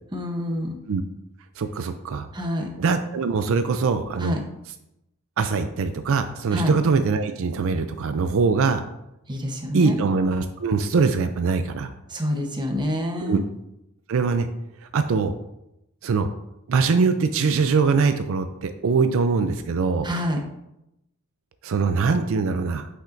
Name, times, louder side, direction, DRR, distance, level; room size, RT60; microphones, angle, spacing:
voice 1, 0.1-0.8 2.3-2.7 4.2-4.4 6.5-6.8 9.3-10.0 12.1-13.4 20.0-20.4, left 1 dB, 20° right, 2 dB, 0.9 m, -27 dB
voice 2, 1.6-2.3 2.8-4.4 5.4-8.8 9.7-11.9 13.2-13.4 14.1-14.5 14.9-15.3 16.0-16.3 16.7-20.1 21.6-22.9, right 4 dB, 70° right, 9 dB, 0.4 m, -22 dB
8.5 x 5.7 x 2.6 m, 0.86 s
head